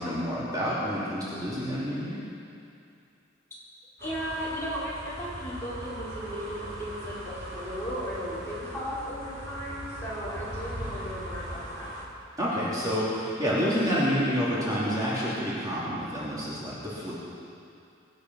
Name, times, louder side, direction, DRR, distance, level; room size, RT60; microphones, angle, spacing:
voice 1, 0.0-2.2 12.4-17.1, equal, 20° right, -8 dB, 3.1 m, -28 dB
voice 2, 4.0-12.0, equal, 15° left, -8 dB, 4.4 m, -36 dB
sound 1, 4.0-12.0, equal, 55° right, 3.8 m, -39 dB
24.0 x 9.6 x 5.6 m, 2.5 s
head